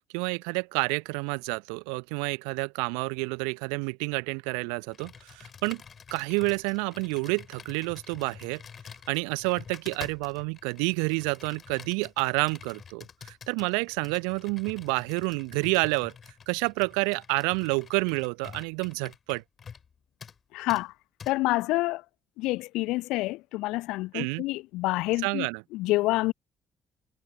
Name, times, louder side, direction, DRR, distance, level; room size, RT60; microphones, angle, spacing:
voice 1, 0.1-5.8 6.1-8.6 9.1-16.1 16.5-19.4 24.1-24.4 25.2-25.6, right 37 dB, 70° right, 0.6 m, -29 dB
Computer keyboard, 4.9-19.9 20.2-20.4 20.7-20.8 21.2-21.3, left 6 dB, 40° left, 5.1 m, -48 dB
voice 2, 20.5-20.9 21.3-22.0 22.4-25.5 25.7-26.3, left 20 dB, 65° left, 0.6 m, -27 dB
figure-of-eight pair, 45°, 0 cm